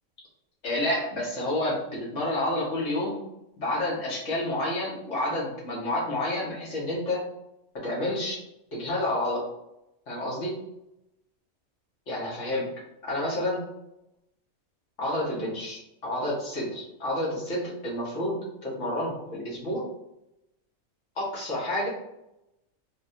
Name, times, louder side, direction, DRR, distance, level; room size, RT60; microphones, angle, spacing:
voice 1, 0.6-3.2 3.6-7.2 7.8-8.4 8.7-9.4 10.1-10.5 12.1-12.7 13.0-13.6 15.0-19.8 21.2-21.9, left 1 dB, 60° left, -5 dB, 1.8 m, -29 dB
3.6 x 3.6 x 2.7 m, 0.86 s
omnidirectional pair, 1.4 m